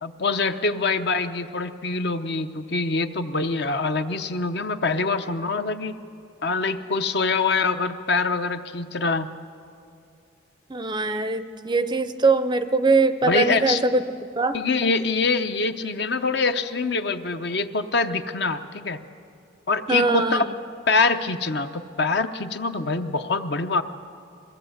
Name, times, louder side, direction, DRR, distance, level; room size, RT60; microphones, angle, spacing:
voice 1, 0.0-5.9 6.4-9.3 13.2-13.8 14.5-19.0 19.7-20.5 20.9-23.8, left 3 dB, 55° left, 9 dB, 0.8 m, -24 dB
voice 2, 10.7-14.1 14.4-14.6 19.9-20.6, right 3 dB, 20° right, 11 dB, 0.5 m, -22 dB
22.0 x 16.0 x 8.0 m, 2.6 s
head